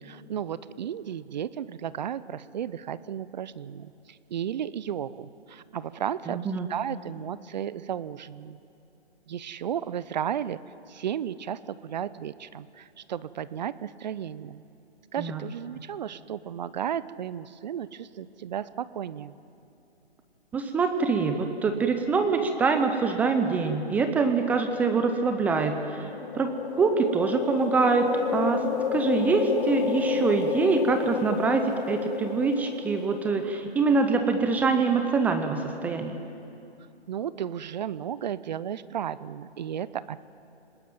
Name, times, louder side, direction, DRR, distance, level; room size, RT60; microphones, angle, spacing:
voice 1, 0.0-3.9 4.3-6.4 6.7-8.6 9.3-10.6 10.9-14.6 15.1-19.4 37.1-40.2, right 9 dB, 45° right, 17 dB, 0.7 m, -34 dB
voice 2, 6.3-6.7 15.2-15.4 20.5-28.6 28.9-36.2, right 4 dB, 5° right, 6 dB, 0.5 m, -25 dB
sound 1, 25.9-33.6, left 7 dB, 55° left, 1.4 m, -30 dB
29.0 x 19.5 x 9.0 m, 2.8 s
hypercardioid pair, 140°, 32 cm